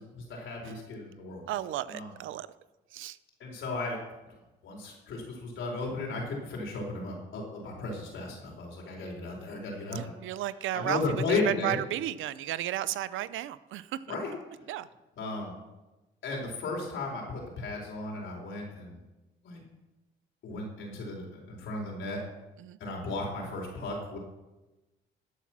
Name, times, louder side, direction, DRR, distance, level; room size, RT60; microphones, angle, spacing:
voice 1, 0.3-1.4 1.9-2.1 3.4-4.0 4.6-10.1 10.7-11.8 14.1-14.3 15.2-15.5 16.2-19.0 19.4-19.6 20.4-22.2 22.8-24.2, left 3 dB, 75° left, -1 dB, 4.2 m, -35 dB
voice 2, 1.5-2.5 2.9-3.2 9.9-14.2 14.7-14.9 22.6-22.8, right 13 dB, 80° right, 16 dB, 0.6 m, -34 dB
13.5 x 8.2 x 6.1 m, 1.1 s
cardioid pair, 90°, 20 cm